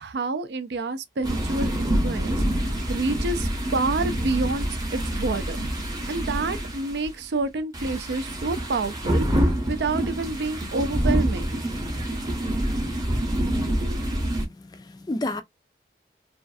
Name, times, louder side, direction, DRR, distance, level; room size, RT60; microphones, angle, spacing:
voice 1, 0.0-4.7 4.9-5.7 6.1-11.6, right 3 dB, 80° right, 0.4 m, -29 dB
sound 1, 1.2-7.2 7.7-14.5, equal, 20° right, 0.7 m, -26 dB
voice 2, 14.4-15.4, left 2 dB, 25° left, 0.3 m, -31 dB
2.5 x 2.4 x 2.3 m
head